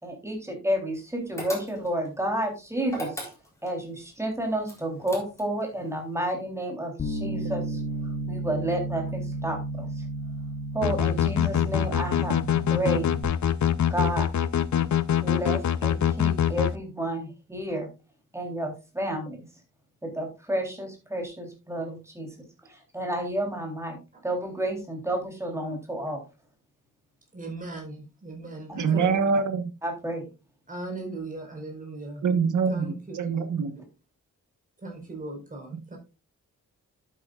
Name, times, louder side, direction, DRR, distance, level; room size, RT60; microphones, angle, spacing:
voice 1, 0.0-3.1 3.6-7.8 8.3-10.0 10.7-13.1 13.9-14.3 15.2-17.9 18.3-19.5 20.0-22.3 22.6-24.0 24.2-26.2 28.7-29.1 29.8-30.3, right 1 dB, 10° right, 2 dB, 3.5 m, -31 dB
sound 1, 1.4-2.1 2.9-3.8 4.6-5.6, equal, 10° left, 3.9 m, -37 dB
Bass guitar, 7.0-13.2, right 1 dB, 35° left, 1.2 m, -33 dB
sound 2, 10.8-16.7, left 9 dB, 60° left, 0.7 m, -24 dB
voice 2, 27.3-29.3 30.7-32.2 32.7-33.2 33.5-33.6 34.8-36.0, right 2 dB, 25° right, 1 dB, 4.8 m, -38 dB
voice 3, 28.8-29.7 32.2-33.7 35.7-35.8, right 5 dB, 65° right, 9 dB, 1.4 m, -25 dB
12.0 x 8.6 x 2.5 m, 0.29 s
wide cardioid pair, 170°, 32 cm